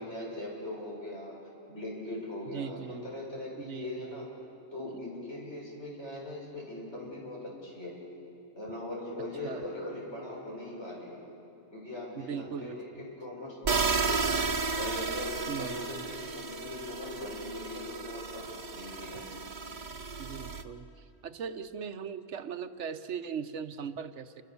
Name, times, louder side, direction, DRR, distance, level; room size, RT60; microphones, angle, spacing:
voice 1, 0.0-1.4 1.7-4.3 4.7-7.9 8.6-11.2 11.7-14.4 14.8-19.2, left 1 dB, 75° left, -4 dB, 6.9 m, -40 dB
voice 2, 2.4-3.1 3.6-4.3 4.9-5.0 7.0-7.2 9.4-9.6 12.2-13.0 15.5-16.2 20.2-24.4, right 7 dB, 80° right, 10 dB, 1.2 m, -40 dB
sound 1, 13.6-20.6, right 4 dB, 45° right, 1.0 m, -33 dB
29.0 x 24.5 x 7.0 m, 2.8 s
omnidirectional pair, 1.2 m